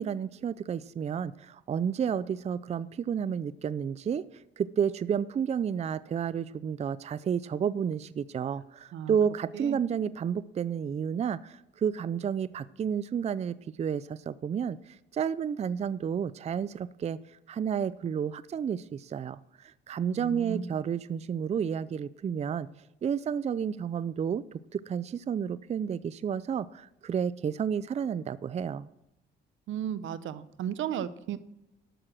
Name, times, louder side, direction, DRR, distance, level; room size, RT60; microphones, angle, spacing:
voice 1, 0.0-22.7 23.0-28.9, right 7 dB, 35° right, 17 dB, 0.4 m, -31 dB
voice 2, 20.0-20.7 29.7-31.4, right 9 dB, 75° right, 15 dB, 0.7 m, -34 dB
12.5 x 6.4 x 6.0 m, 0.85 s
cardioid pair, 90°, 20 cm